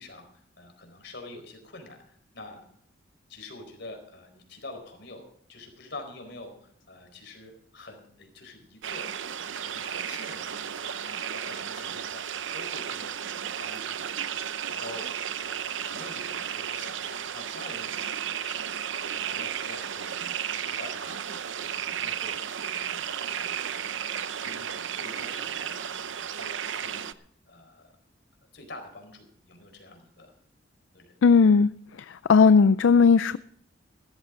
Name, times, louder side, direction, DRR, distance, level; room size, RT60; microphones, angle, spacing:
voice 1, 0.0-2.6 3.3-13.2 13.6-14.3 14.7-15.1 15.4-20.3 20.5-21.2 21.5-23.6 24.4-27.9 28.5-30.3 30.9-31.1, left 2 dB, 65° left, 5 dB, 4.4 m, -46 dB
sound 1, 8.8-27.1, right 8 dB, 80° right, 0.7 m, -33 dB
voice 2, 31.2-31.7 32.1-33.4, left 5 dB, 85° left, 15 dB, 0.4 m, -17 dB
16.0 x 13.5 x 3.7 m, 0.65 s
head